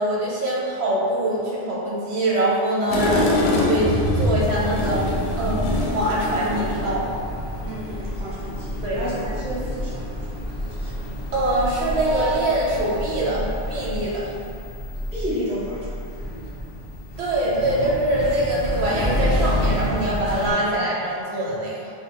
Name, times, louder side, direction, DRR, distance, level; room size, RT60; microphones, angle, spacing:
voice 1, 0.0-7.1 8.8-9.1 11.3-14.3 17.2-21.9, right 1 dB, 85° right, -5 dB, 1.0 m, -24 dB
sound 1, 2.9-7.0, left 1 dB, 65° left, 0.7 m, -23 dB
sound 2, 4.4-20.5, equal, 35° left, 0.8 m, -29 dB
voice 2, 7.6-10.3 10.6-10.9 15.1-16.1, equal, 10° right, -8 dB, 0.4 m, -32 dB
2.3 x 2.2 x 3.6 m, 2.5 s
omnidirectional pair, 1.1 m